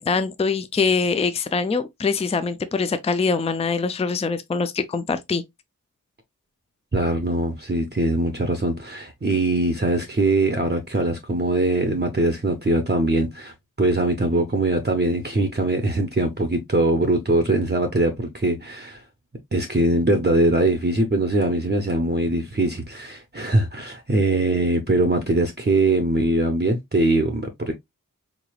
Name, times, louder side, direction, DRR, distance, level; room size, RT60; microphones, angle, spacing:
voice 1, 0.0-5.4, left 4 dB, 20° left, 0.4 m, -23 dB
voice 2, 6.9-19.0 19.5-27.7, right 2 dB, 30° right, 0.6 m, -22 dB
3.7 x 3.2 x 2.3 m
wide cardioid pair, 55°, 34 cm